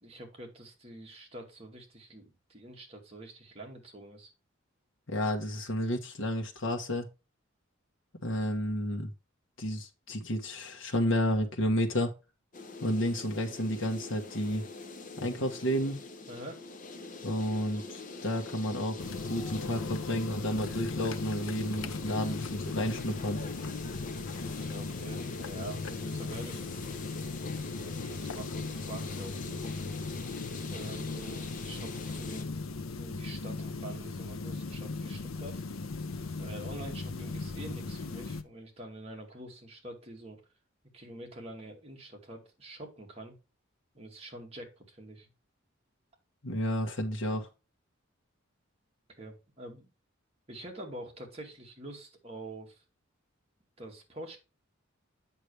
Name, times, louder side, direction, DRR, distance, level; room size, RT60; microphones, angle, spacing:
voice 1, 0.0-4.3 16.3-16.7 24.4-26.6 27.8-30.0 30.7-32.5 33.0-35.6 36.4-40.4 40.9-43.4 43.9-45.3 49.2-49.9 50.5-52.8 53.8-54.4, right 1 dB, 30° right, 2.3 m, -46 dB
voice 2, 5.1-7.1 8.2-9.1 9.6-12.1 12.8-14.6 15.2-16.0 17.2-23.4 46.4-47.5, equal, 70° left, 1.3 m, -31 dB
sound 1, 12.5-32.4, left 3 dB, 40° left, 1.0 m, -44 dB
sound 2, 19.0-38.4, left 3 dB, 85° left, 0.7 m, -38 dB
8.2 x 6.0 x 3.3 m
head